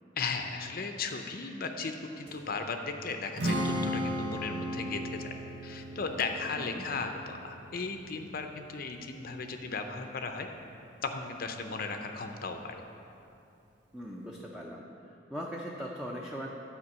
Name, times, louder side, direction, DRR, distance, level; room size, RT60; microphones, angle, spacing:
voice 1, 0.2-5.3 5.6-10.5 11.0-12.8, left 4 dB, 55° left, 5 dB, 0.6 m, -36 dB
sound 1, 2.3-9.5 10.0-10.8 11.5-12.1 13.0-13.1, right 1 dB, 60° right, 2.3 m, -55 dB
Strum, 3.4-9.6, equal, 80° right, 1.1 m, -36 dB
voice 2, 13.9-14.8 15.3-16.5, equal, 5° right, -2 dB, 0.6 m, -39 dB
9.7 x 5.1 x 7.3 m, 2.7 s
head